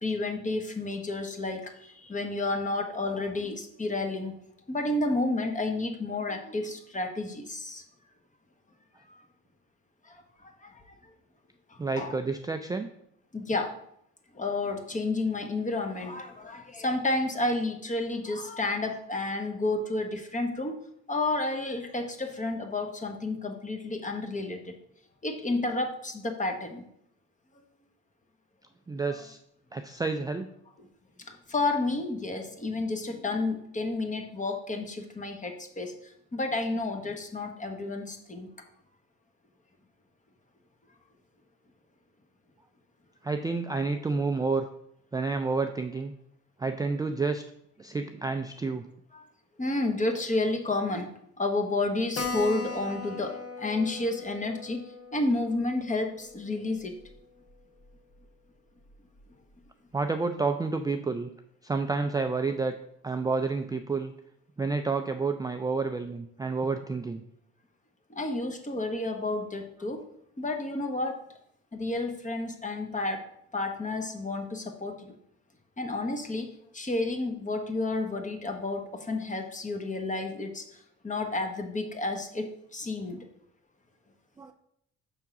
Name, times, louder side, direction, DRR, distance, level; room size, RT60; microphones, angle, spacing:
voice 1, 0.0-4.3 4.7-7.8 9.1-9.2 10.0-10.8 11.7-12.1 13.3-13.7 14.3-20.7 21.1-24.7 25.2-26.8 30.8-30.9 31.3-36.0 36.3-38.5 49.1-49.3 49.6-54.8 55.1-56.9 68.1-70.0 70.4-71.2 71.7-73.2 73.5-75.1 75.8-83.2, left 2 dB, 25° left, 5 dB, 1.1 m, -31 dB
voice 2, 11.8-12.9 28.9-29.4 29.7-30.5 43.2-44.7 45.1-46.1 46.6-47.4 47.8-48.8 59.9-61.3 61.6-62.7 63.0-64.1 64.6-67.2 84.4-84.5, right 4 dB, 15° right, 6 dB, 0.3 m, -29 dB
Keyboard (musical), 52.2-57.2 57.5-57.6 57.9-58.0 58.2-58.3 58.9-59.2, left 3 dB, 55° left, 1.1 m, -39 dB
5.8 x 3.6 x 5.9 m, 0.73 s
cardioid pair, 90°, 30 cm